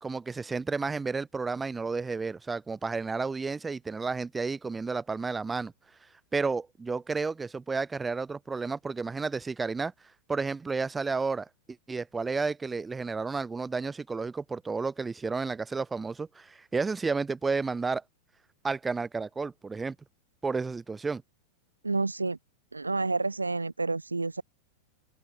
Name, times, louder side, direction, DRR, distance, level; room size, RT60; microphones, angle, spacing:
voice 1, 0.0-5.7 6.3-9.9 10.3-11.5 11.9-18.0 18.6-20.0 20.4-21.2, right 4 dB, 15° right, 0.8 m, -31 dB
voice 2, 21.8-22.4 22.7-24.4, right 3 dB, 80° right, 0.4 m, -29 dB
open air
figure-of-eight pair, 90°, 0 cm